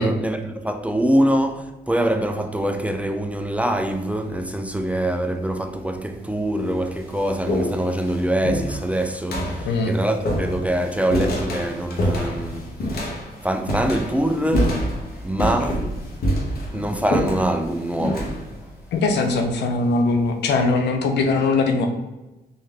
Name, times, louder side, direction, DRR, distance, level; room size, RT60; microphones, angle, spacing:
voice 1, 0.0-13.1 13.4-14.9 15.2-16.0 16.7-18.4, right 1 dB, 10° right, 0.3 m, -24 dB
sound 1, 3.7-4.1 5.1-5.2 6.0-6.1 6.5-20.0, equal, 65° left, 1.0 m, -27 dB
voice 2, 18.9-21.9, left 3 dB, 85° left, 0.6 m, -21 dB
3.9 x 2.7 x 3.3 m
cardioid pair, 80°, 17 cm